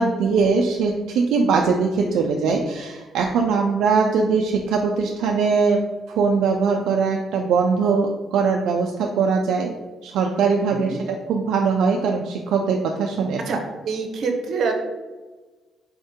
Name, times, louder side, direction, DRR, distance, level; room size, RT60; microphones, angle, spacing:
voice 1, 0.0-5.8 6.1-9.7 10.0-13.6, right 5 dB, 85° right, 1 dB, 0.3 m, -21 dB
voice 2, 10.7-11.0 13.5-13.6 13.8-14.7, right 4 dB, 65° right, 4 dB, 0.7 m, -25 dB
4.3 x 2.7 x 3.6 m, 1.3 s
cardioid pair, 90°, 0 cm